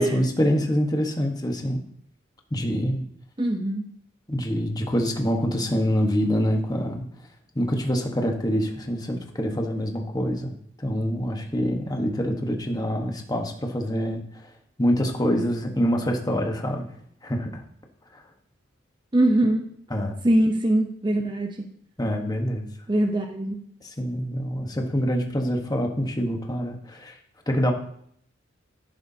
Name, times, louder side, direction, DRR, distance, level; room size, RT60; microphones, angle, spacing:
voice 1, 0.0-1.8 2.5-3.0 4.3-7.0 7.5-14.2 14.8-16.9 17.2-17.6 18.1-18.2 19.9-20.2 22.0-22.7 23.8-27.2 27.5-27.7, equal, 20° left, 2 dB, 1.2 m, -25 dB
voice 2, 3.4-3.8 19.1-19.6 20.2-21.7 22.9-23.6, right 1 dB, 20° right, 3 dB, 0.7 m, -22 dB
11.0 x 9.0 x 2.8 m, 0.67 s
head